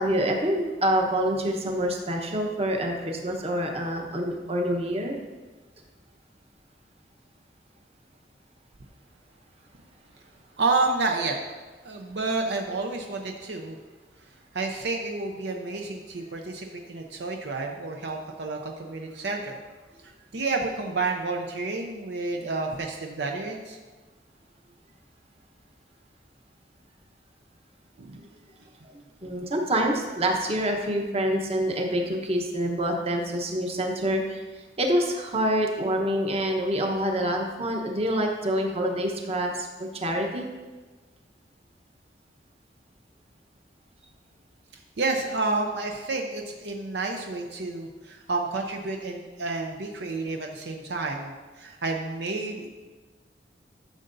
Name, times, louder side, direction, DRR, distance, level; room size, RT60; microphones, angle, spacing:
voice 1, 0.0-5.2 28.8-28.9 29.2-40.5, right 1 dB, 35° right, 2 dB, 1.0 m, -26 dB
voice 2, 10.6-11.4 11.8-13.8 14.5-19.6 20.3-23.8 28.0-28.2 44.7-52.7, right 3 dB, 65° right, 2 dB, 0.6 m, -30 dB
12.5 x 6.6 x 2.6 m, 1.3 s
head